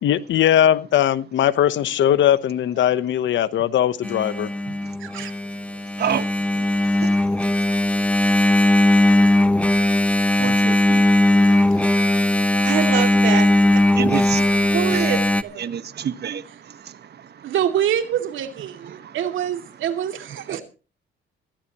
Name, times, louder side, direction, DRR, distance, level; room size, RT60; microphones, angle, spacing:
voice 1, 0.0-4.5, left 10 dB, 70° left, 1.0 m, -19 dB
Engine, 4.0-15.4, left 1 dB, 5° left, 0.9 m, -18 dB
voice 2, 5.0-5.3 11.8-12.0 12.6-13.5 14.3-15.7 17.4-20.6, right 10 dB, 80° right, 2.5 m, -25 dB
voice 3, 6.0-6.7 6.9-7.1 7.6-7.7 9.0-12.5 13.9-15.1 15.6-17.5 18.9-19.2 20.5-20.6, right 8 dB, 55° right, 1.4 m, -31 dB
16.5 x 16.5 x 3.0 m
cardioid pair, 90°, 20 cm